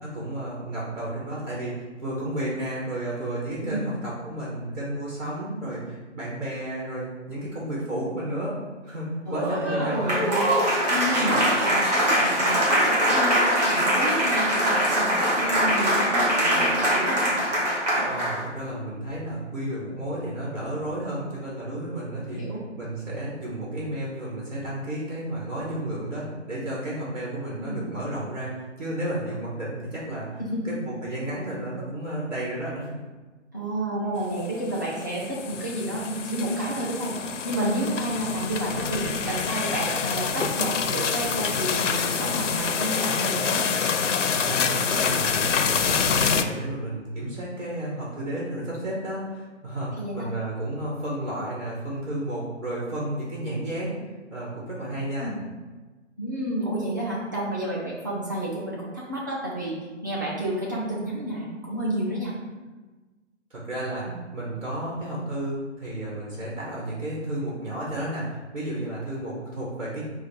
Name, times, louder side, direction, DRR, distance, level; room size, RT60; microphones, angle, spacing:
voice 1, 0.0-10.0 18.0-33.0 44.4-54.0 54.3-55.3 63.5-70.1, right 1 dB, 65° right, -5 dB, 1.5 m, -32 dB
voice 2, 9.3-10.5 10.9-17.4 22.3-22.6 27.6-27.9 30.4-30.7 33.5-37.2 37.4-43.7 50.0-50.3 55.2-55.4 56.2-62.3 64.0-64.2, right 1 dB, 15° right, -6 dB, 0.5 m, -30 dB
Applause, 9.3-18.4, equal, 35° right, 1.1 m, -23 dB
sound 1, 34.4-46.4, left 6 dB, 75° left, 0.5 m, -26 dB
4.8 x 2.1 x 4.6 m, 1.3 s
figure-of-eight pair, 145°, 37 cm